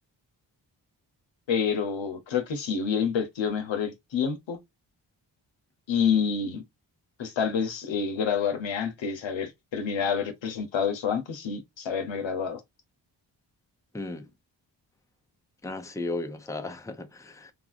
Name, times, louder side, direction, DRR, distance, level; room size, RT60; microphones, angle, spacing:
voice 1, 1.5-4.6 5.9-6.6 7.2-12.6, left 6 dB, 75° left, 0.9 m, -28 dB
voice 2, 13.9-14.3 15.6-17.5, left 2 dB, 5° left, 0.6 m, -35 dB
3.4 x 2.4 x 2.5 m
cardioid pair, 50°, 45 cm